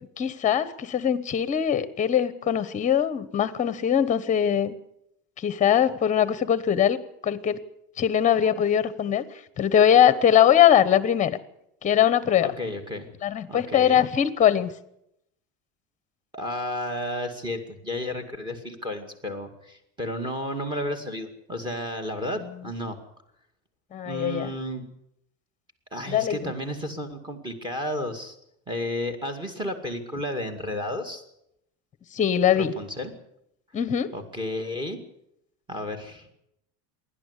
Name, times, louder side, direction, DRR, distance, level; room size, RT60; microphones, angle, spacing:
voice 1, 0.2-4.7 5.4-7.6 8.0-11.4 11.8-12.5 13.2-14.7 23.9-24.5 26.1-26.5 32.1-32.7 33.7-34.1, left 9 dB, 20° left, 15 dB, 1.1 m, -21 dB
voice 2, 12.4-13.1 13.5-14.0 16.3-23.0 24.0-24.9 25.9-28.4 28.7-31.2 32.5-33.1 34.1-35.0 35.7-36.3, left 1 dB, 15° right, 6 dB, 2.3 m, -32 dB
27.0 x 11.5 x 8.3 m, 0.78 s
cardioid pair, 170°, 34 cm